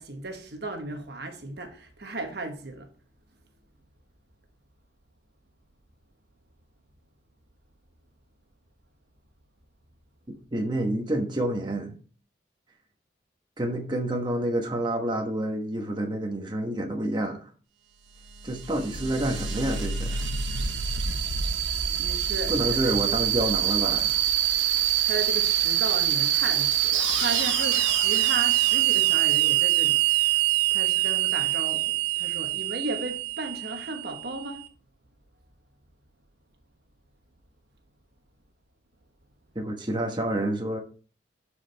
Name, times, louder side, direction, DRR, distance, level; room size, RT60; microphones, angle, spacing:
voice 1, 0.0-2.9 22.0-22.6 22.8-22.9 25.0-30.5 30.7-34.7, right 2 dB, 55° right, 1.2 m, -35 dB
voice 2, 10.5-12.0 13.6-17.5 18.4-20.2 22.5-24.2 39.5-40.8, right 1 dB, 25° right, 1.2 m, -28 dB
sound 1, 18.1-34.5, right 11 dB, 85° right, 1.2 m, -25 dB
12.0 x 4.9 x 3.4 m
head